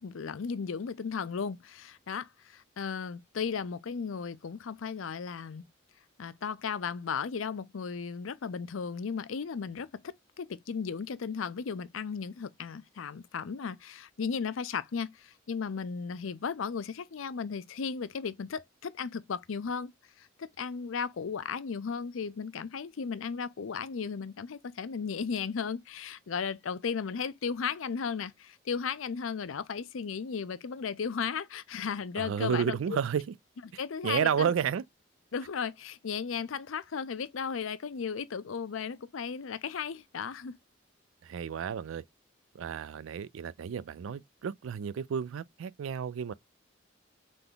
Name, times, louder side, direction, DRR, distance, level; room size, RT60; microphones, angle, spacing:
voice 1, 0.0-5.7 6.2-19.9 20.2-32.8 33.8-34.5 35.3-40.5, left 6 dB, 90° left, 0.5 m, -35 dB
voice 2, 32.2-33.3 34.0-34.9 41.2-42.0 42.5-46.3, right 7 dB, 80° right, 0.3 m, -31 dB
3.8 x 3.4 x 3.7 m
head